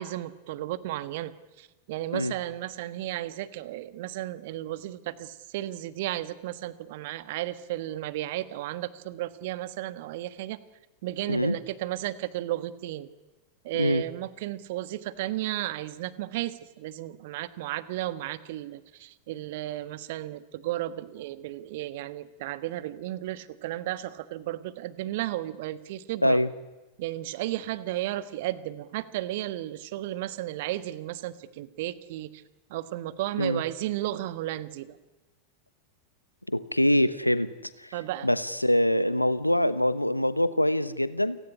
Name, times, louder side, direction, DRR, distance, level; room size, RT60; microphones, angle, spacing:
voice 1, 0.0-10.6 11.0-13.1 13.6-26.4 27.0-32.4 32.7-35.0 37.9-38.3, right 15 dB, 50° right, 15 dB, 1.4 m, -34 dB
voice 2, 36.5-37.5 37.8-37.9 38.2-41.4, left 1 dB, 90° left, 16 dB, 1.1 m, -24 dB
29.0 x 18.0 x 9.9 m, 1.1 s
figure-of-eight pair, 90°, 0 cm